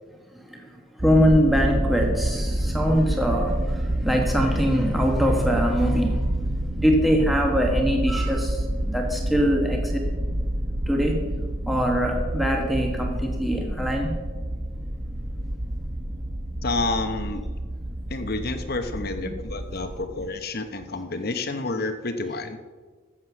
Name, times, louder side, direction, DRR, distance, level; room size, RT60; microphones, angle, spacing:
voice 1, 0.3-6.3 6.8-10.1 10.9-11.2 11.7-14.1, equal, ahead, 0 dB, 1.3 m, -23 dB
sound 1, 1.0-20.3, right 1 dB, 20° right, 0.9 m, -28 dB
voice 2, 16.6-17.4 18.1-22.6, left 2 dB, 45° left, 8 dB, 1.0 m, -29 dB
14.5 x 7.5 x 6.1 m, 1.4 s
head